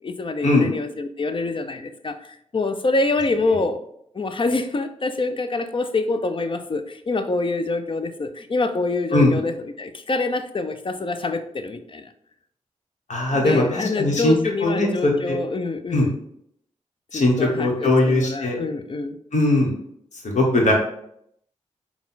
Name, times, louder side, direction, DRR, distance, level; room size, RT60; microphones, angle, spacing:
voice 1, 0.0-3.8 4.1-12.1 13.3-16.1 17.1-19.2, left 3 dB, 40° left, 9 dB, 0.5 m, -26 dB
voice 2, 13.1-14.4 14.6-15.4 15.9-16.1 17.1-18.6 19.3-19.7 20.2-20.7, left 2 dB, 70° left, -1 dB, 1.2 m, -19 dB
4.1 x 2.3 x 3.9 m, 0.71 s
cardioid pair, 40°, 13 cm